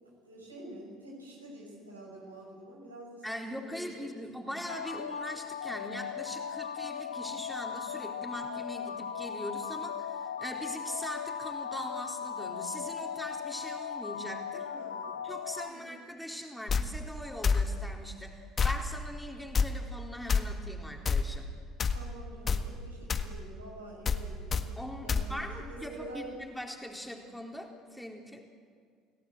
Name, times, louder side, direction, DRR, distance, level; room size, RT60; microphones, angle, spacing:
voice 1, 0.0-4.2 14.5-15.2 15.7-15.9 21.9-24.8 25.0-26.4, right 1 dB, 90° right, -2 dB, 6.6 m, -48 dB
voice 2, 3.2-14.7 15.2-21.5 24.8-28.4, equal, 5° left, 2 dB, 4.1 m, -41 dB
sound 1, 4.7-15.7, left 7 dB, 85° left, 0.9 m, -38 dB
sound 2, 16.7-16.8 17.4-17.7 18.6-18.8 19.5-19.7 20.3-20.4 21.1-21.3 21.8-22.0 22.5-22.6 23.1-23.3 24.1-24.2 24.5-24.6 25.1-25.3, left 5 dB, 35° left, 1.7 m, -26 dB
29.5 x 17.5 x 8.0 m, 2.1 s
figure-of-eight pair, 60°, 0 cm